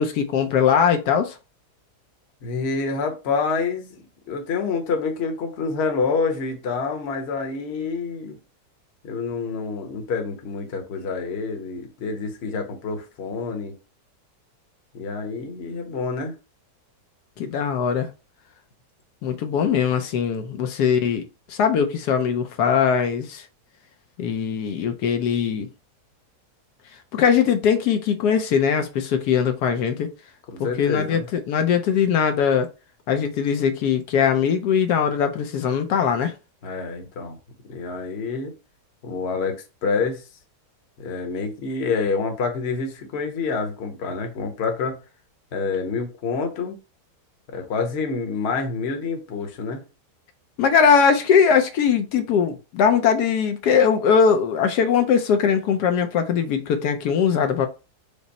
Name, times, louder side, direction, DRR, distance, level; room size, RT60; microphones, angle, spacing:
voice 1, 0.0-1.4 17.4-18.1 19.2-21.2 21.5-23.4 24.2-25.7 27.1-30.1 30.8-32.7 33.1-36.3 50.6-57.7, left 7 dB, 80° left, 1.1 m, -20 dB
voice 2, 2.4-4.0 4.3-8.4 9.0-13.8 14.9-16.3 30.5-31.3 36.6-37.4 37.7-38.5 39.0-40.2 41.0-45.0 45.5-46.8 47.5-49.8, left 4 dB, 50° left, 1.0 m, -27 dB
5.2 x 2.0 x 4.0 m
omnidirectional pair, 1.7 m